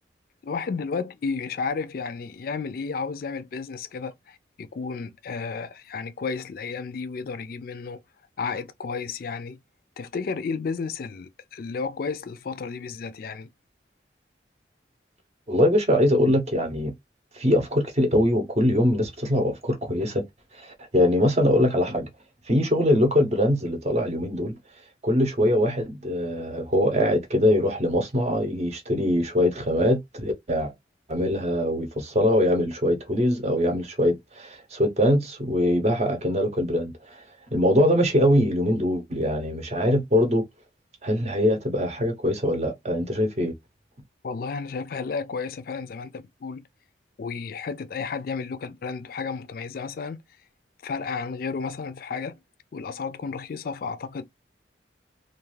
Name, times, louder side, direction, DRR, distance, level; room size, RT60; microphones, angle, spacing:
voice 1, 0.4-8.0 8.4-9.6 10.0-13.5 44.2-46.6 47.2-50.2 50.8-52.4 52.7-54.2, left 5 dB, 50° left, 0.3 m, -32 dB
voice 2, 15.5-16.9 17.4-20.2 20.5-22.1 22.5-24.6 25.0-30.7 31.1-37.2 37.5-40.4 41.0-43.5, left 1 dB, 40° right, 0.7 m, -22 dB
2.4 x 2.3 x 3.1 m
head